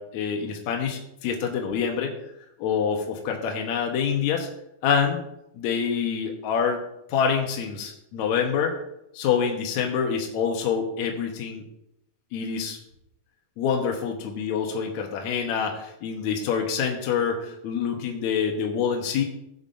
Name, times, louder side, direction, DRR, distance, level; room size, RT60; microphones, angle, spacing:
voice 1, 0.0-2.2 2.6-4.5 4.8-5.2 5.5-6.8 7.1-8.8 9.1-11.6 12.3-12.8 13.6-19.2, left 7 dB, 75° left, 2 dB, 1.7 m, -26 dB
16.0 x 7.0 x 2.6 m, 0.82 s
omnidirectional pair, 4.7 m